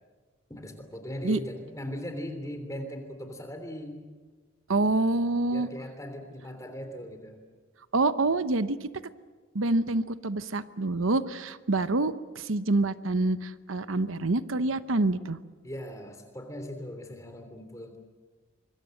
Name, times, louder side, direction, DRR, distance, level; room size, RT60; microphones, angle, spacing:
voice 1, 0.5-4.0 5.5-7.4 15.6-18.0, equal, 15° left, 6 dB, 3.3 m, -39 dB
voice 2, 4.7-5.7 7.9-8.9 9.5-15.4, right 2 dB, 85° right, 13 dB, 0.9 m, -26 dB
25.0 x 22.5 x 7.8 m, 1.4 s
head